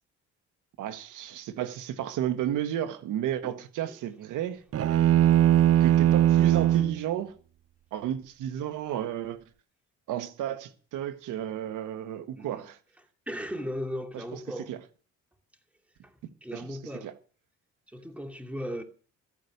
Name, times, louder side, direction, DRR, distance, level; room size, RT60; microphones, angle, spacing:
voice 1, 0.8-4.6 5.8-7.3 7.9-9.4 10.1-12.8 14.1-14.4 14.7-14.8 16.5-16.8 17.0-17.1, right 11 dB, 90° right, 1.6 m, -33 dB
sound 1, 4.7-7.0, right 12 dB, 50° right, 0.6 m, -20 dB
voice 2, 12.3-12.7 13.3-14.7 16.0-16.1 16.4-17.1 17.9-18.8, equal, 5° right, 2.7 m, -37 dB
14.5 x 9.3 x 6.7 m
cardioid pair, 90°, 30 cm